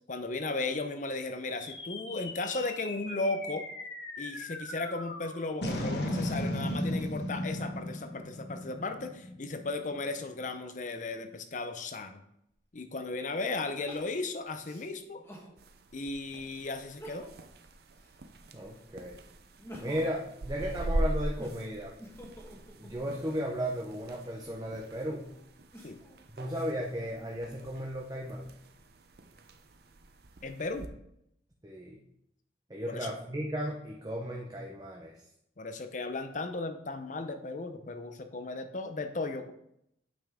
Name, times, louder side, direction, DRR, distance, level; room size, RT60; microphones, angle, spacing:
voice 1, 0.1-3.7 4.2-12.2 12.7-15.2 15.9-17.3 25.8-26.0 30.4-30.9 32.9-33.1 35.6-39.5, left 3 dB, 45° left, 8 dB, 0.7 m, -35 dB
sound 1, 1.6-10.2, left 1 dB, 70° left, 1.2 m, -36 dB
Crying sobbing, 12.5-12.6 13.9-15.5 16.1-16.2 16.8-17.5 17.9-18.9 19.4-23.4 24.1-26.2 26.8-27.6, equal, 15° left, 1.4 m, -51 dB
sound 2, 15.6-30.9, right 1 dB, 60° right, 0.6 m, -41 dB
voice 2, 18.5-19.2 19.8-21.9 22.8-25.3 26.3-28.5 31.6-32.0 32.7-35.3, equal, 20° right, -2 dB, 0.8 m, -35 dB
8.7 x 5.6 x 3.7 m, 0.77 s
head